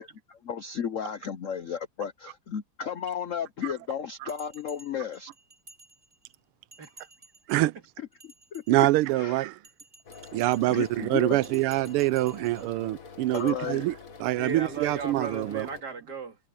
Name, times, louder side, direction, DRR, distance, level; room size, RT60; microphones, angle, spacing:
voice 1, 0.0-5.3 8.2-8.6 9.1-9.4 10.7-11.4 13.3-13.8, left 8 dB, 75° left, 0.7 m, -34 dB
Bell, 4.3-6.3 6.7-7.7 8.1-9.1 9.6-10.9 11.4-12.7 13.3-13.5, right 2 dB, 20° right, 7.5 m, -54 dB
voice 2, 6.8-7.1 14.4-16.4, right 4 dB, 50° right, 3.0 m, -37 dB
voice 3, 8.7-9.5 10.3-13.9 14.2-15.7, right 17 dB, 90° right, 1.5 m, -25 dB
sound 1, 10.1-15.8, left 5 dB, 40° left, 2.0 m, -46 dB
omnidirectional pair, 2.4 m